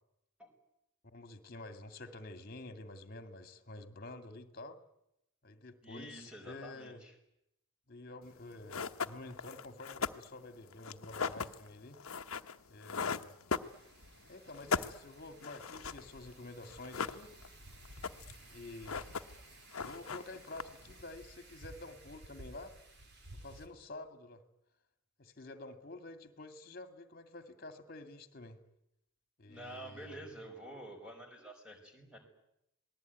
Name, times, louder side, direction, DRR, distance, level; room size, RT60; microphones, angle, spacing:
voice 1, 1.0-4.8 5.4-7.0 7.9-12.0 12.7-13.3 14.3-17.3 18.5-19.0 19.8-22.7 23.4-24.4 25.2-28.6 29.4-30.3, left 2 dB, 45° left, 9 dB, 2.2 m, -49 dB
voice 2, 5.8-7.1 29.5-32.2, right 1 dB, 5° right, 3 dB, 5.1 m, -48 dB
sound 1, 8.3-8.4 8.7-14.2 14.5-16.1 16.3-16.4 16.6-17.6 17.9-18.5 18.7-19.5 19.7-21.0, left 5 dB, 75° left, 1.0 m, -38 dB
Wind, 13.6-23.7, right 1 dB, 50° right, 3.2 m, -55 dB
27.0 x 19.5 x 9.4 m, 0.82 s
head